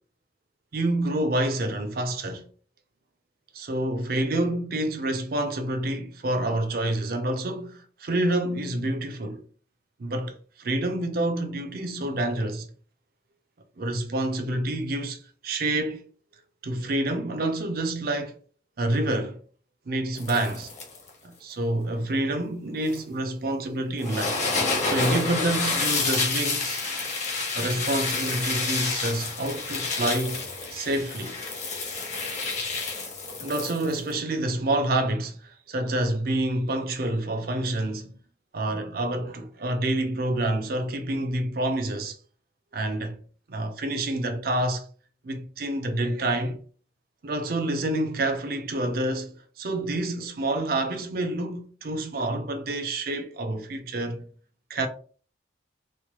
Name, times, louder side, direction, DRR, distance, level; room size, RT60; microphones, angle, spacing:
voice 1, 0.7-2.5 3.5-9.4 10.0-12.7 13.8-16.1 16.6-18.4 18.8-19.4 19.9-20.7 21.2-24.4 24.8-26.8 27.5-30.4 30.7-31.4 33.4-38.2 38.5-42.2 42.7-43.2 43.5-44.9 45.2-46.6 47.2-54.3 54.7-54.9, right 1 dB, 50° right, 0.5 m, -28 dB
sound 1, 20.2-21.1 22.9-23.0 24.0-34.1, left 3 dB, 40° left, 0.7 m, -29 dB
3.1 x 2.1 x 2.9 m
head